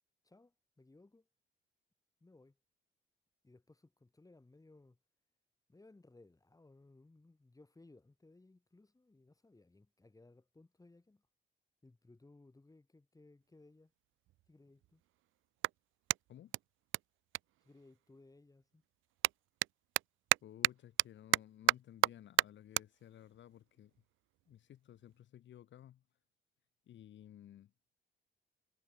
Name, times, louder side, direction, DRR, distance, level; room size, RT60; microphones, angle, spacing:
voice 1, 0.2-1.3 2.2-2.6 3.4-5.0 5.7-11.3 11.8-13.9 14.5-15.0 17.6-18.8, left 2 dB, 15° left, 6.9 m, -62 dB
Clapping, 13.5-13.6 14.3-18.3 18.6-25.3, right 17 dB, 90° right, 0.7 m, -36 dB
voice 2, 20.4-23.9 24.5-26.0 26.9-27.7, left 11 dB, 70° left, 2.3 m, -56 dB
cardioid pair, 90°, 20 cm